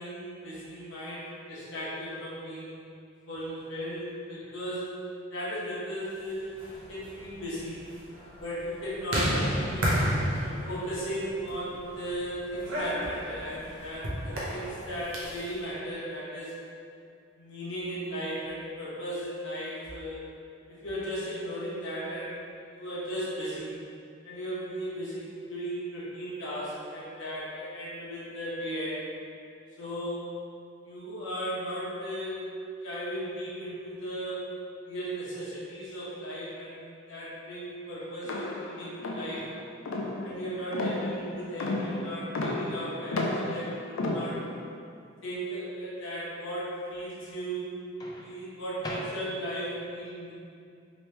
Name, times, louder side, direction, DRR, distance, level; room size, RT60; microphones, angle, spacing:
voice 1, 0.0-2.8 3.3-5.0 5.3-7.8 8.4-9.9 10.7-16.6 17.4-20.2 20.7-23.7 24.2-29.1 29.8-30.3 30.8-32.4 32.8-34.6 34.9-39.5 40.2-44.4 45.2-47.7 48.2-50.3, equal, 65° left, -8 dB, 1.0 m, -36 dB
sound 1, 6.4-15.5, equal, 90° right, 0.8 m, -32 dB
sound 2, 38.2-44.7, left 2 dB, 85° left, 0.4 m, -33 dB
Microwave oven, 39.3-40.0 42.0-42.2 48.0-49.6, left 1 dB, 20° left, 0.4 m, -42 dB
3.0 x 2.9 x 3.2 m, 2.4 s
head